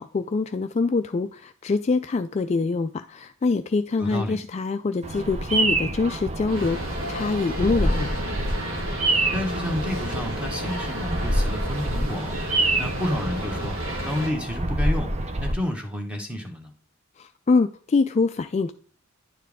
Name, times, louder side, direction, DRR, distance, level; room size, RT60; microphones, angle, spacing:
voice 1, 0.0-8.2 17.2-18.7, left 4 dB, 30° left, 8 dB, 0.3 m, -25 dB
voice 2, 4.0-4.4 9.3-12.4 12.8-13.7 14.0-15.1 15.4-16.7, left 1 dB, 5° right, 3 dB, 1.3 m, -30 dB
Bird vocalization bird call bird song, 5.0-15.5, right 1 dB, 30° right, 0.7 m, -27 dB
sound 1, 6.5-14.3, equal, 75° right, 2.3 m, -33 dB
10.0 x 4.5 x 3.5 m, 0.43 s
head